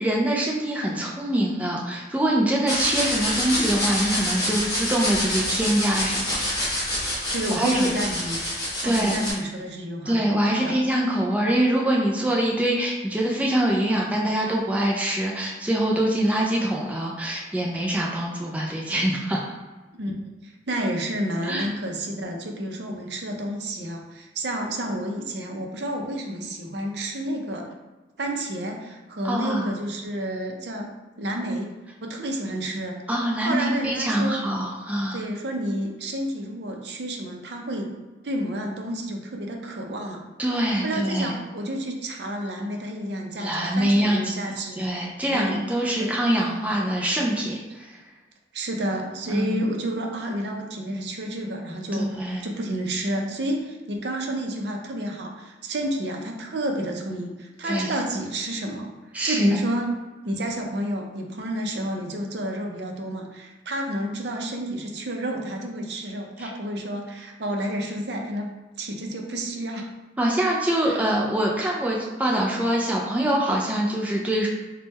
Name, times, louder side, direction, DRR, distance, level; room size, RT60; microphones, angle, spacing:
voice 1, 0.0-6.4 7.5-7.9 8.8-9.1 10.1-19.5 21.4-21.7 29.2-29.7 33.1-35.2 40.4-41.3 43.4-44.4 44.8-48.0 49.3-49.6 52.0-52.4 57.6-57.9 59.1-59.6 66.4-66.5 70.2-74.5, right 1 dB, 10° right, -2 dB, 0.4 m, -24 dB
sound 1, 2.7-9.3, left 1 dB, 20° left, 1.2 m, -27 dB
voice 2, 7.3-8.4 8.8-10.2 10.5-10.8 20.0-20.1 20.4-27.7 28.2-30.9 31.2-31.7 32.0-33.0 33.4-34.5 35.1-38.0 38.2-40.2 40.8-44.9 45.3-45.6 46.0-46.1 48.5-58.9 59.2-59.9 60.2-68.5 68.8-69.9 70.8-71.1, right 1 dB, 70° right, 2 dB, 0.6 m, -30 dB
3.5 x 2.2 x 4.0 m, 1.2 s
head